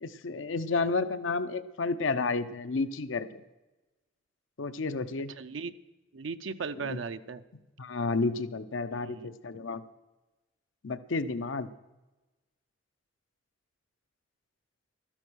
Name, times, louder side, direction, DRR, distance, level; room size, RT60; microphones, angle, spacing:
voice 1, 0.0-3.4 4.6-5.3 6.8-7.0 7.8-9.8 10.8-11.7, left 3 dB, 85° left, 12 dB, 0.7 m, -31 dB
voice 2, 5.3-5.7 6.1-7.4 9.0-9.4, right 5 dB, 80° right, 9 dB, 0.5 m, -37 dB
12.5 x 10.5 x 6.2 m, 1.1 s
head